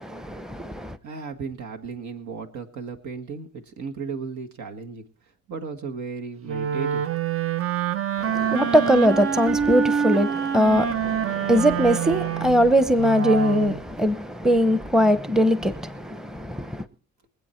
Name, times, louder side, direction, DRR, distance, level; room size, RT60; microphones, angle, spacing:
voice 1, 0.0-1.0 8.2-16.8, equal, ahead, 0.8 m, -21 dB
voice 2, 1.0-5.0 5.5-7.0, right 5 dB, 70° right, 1.7 m, -35 dB
Wind instrument woodwind instrument, 6.5-13.8, right 8 dB, 50° right, 0.8 m, -26 dB
23.5 x 8.4 x 4.4 m
cardioid pair, 90°, 30 cm